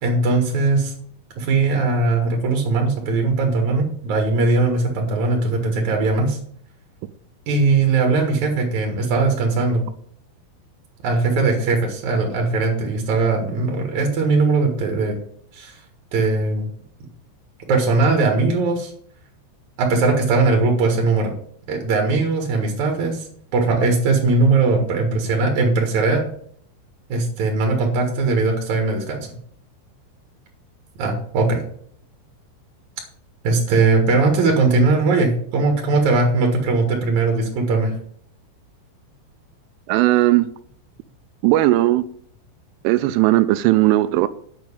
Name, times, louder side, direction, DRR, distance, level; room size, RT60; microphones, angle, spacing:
voice 1, 0.0-0.9 1.4-6.4 7.5-9.8 11.0-15.2 15.5-15.8 16.1-16.7 17.7-18.9 19.8-21.3 21.7-23.3 23.5-26.2 27.1-29.3 31.0-31.6 33.4-38.0, right 3 dB, 65° right, 1.9 m, -19 dB
voice 2, 39.9-40.5 41.4-42.0 42.8-44.3, right 16 dB, 85° right, 3.0 m, -17 dB
9.0 x 6.0 x 7.2 m
omnidirectional pair, 5.9 m